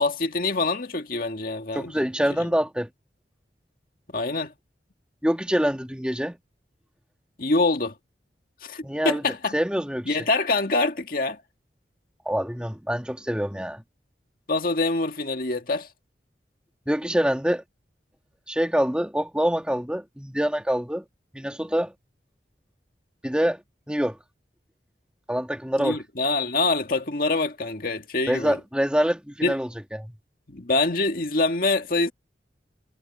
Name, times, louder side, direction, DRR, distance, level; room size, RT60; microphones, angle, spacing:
voice 1, 0.0-1.9 4.1-4.5 7.4-7.9 8.6-9.5 10.1-11.4 14.5-15.9 25.8-28.6 29.4-29.5 30.5-32.1, left 3 dB, 55° left, 2.0 m, -25 dB
voice 2, 1.7-2.9 5.2-6.4 8.8-9.2 9.5-10.2 12.3-13.8 16.9-17.6 18.5-21.0 21.3-21.9 23.2-23.6 23.9-24.2 25.3-26.0 28.3-30.1, equal, 5° right, 1.9 m, -25 dB
head